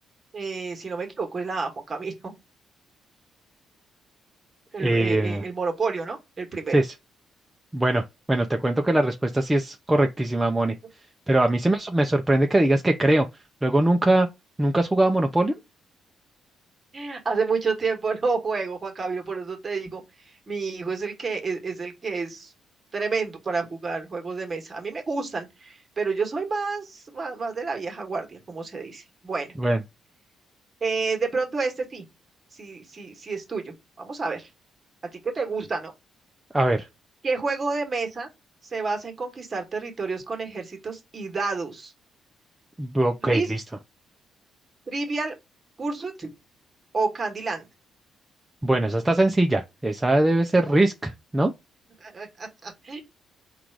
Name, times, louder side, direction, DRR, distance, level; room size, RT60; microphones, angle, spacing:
voice 1, 0.3-2.3 4.7-6.7 16.9-22.5 22.9-29.5 30.8-32.1 32.5-34.5 35.1-35.9 37.2-38.3 38.6-41.9 43.2-43.5 44.9-45.3 45.8-46.3 46.9-47.7 50.6-50.8 52.0-53.0, right 4 dB, 35° right, 1.3 m, -30 dB
voice 2, 4.8-5.4 6.7-6.9 7.7-10.7 11.3-13.3 13.6-14.3 14.6-15.6 29.6-29.8 36.5-36.9 42.8-43.6 48.6-51.5, right 1 dB, 10° right, 0.5 m, -21 dB
3.8 x 2.4 x 4.5 m
cardioid pair, 90°, 0 cm